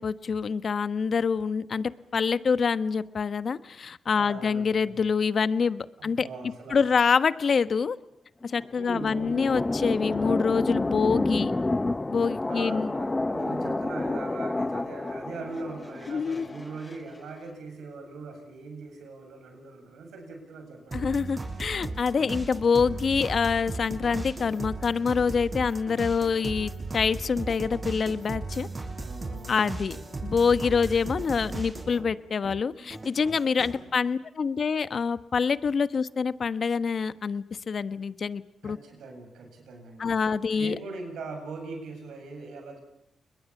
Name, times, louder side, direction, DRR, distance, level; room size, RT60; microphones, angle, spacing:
voice 1, 0.0-6.3 6.7-8.0 8.4-11.5 12.1-12.9 16.1-16.5 20.9-28.7 29.5-30.0 30.2-38.8 40.0-40.8, left 5 dB, 55° left, 13 dB, 1.2 m, -26 dB
voice 2, 4.2-4.9 6.0-6.9 8.8-9.6 12.5-21.3 29.0-29.9 33.6-34.0 38.6-40.1 40.6-42.8, right 3 dB, 80° right, 4 dB, 7.9 m, -41 dB
sound 1, 8.4-17.0, left 2 dB, 25° left, 0.9 m, -29 dB
sound 2, 20.9-32.1 32.4-33.8, right 2 dB, 35° right, 6.6 m, -36 dB
30.0 x 21.5 x 7.3 m, 0.80 s
supercardioid pair, 45°, 0 cm